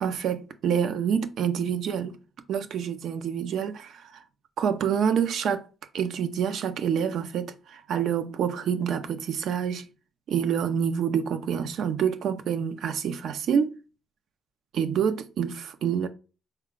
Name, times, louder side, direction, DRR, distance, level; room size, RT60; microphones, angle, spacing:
voice 1, 0.0-2.2 2.5-4.2 4.6-5.7 5.9-9.9 10.3-13.8 14.7-16.1, right 8 dB, 70° right, 0.5 m, -27 dB
3.8 x 2.2 x 3.7 m
cardioid pair, 100°, 0 cm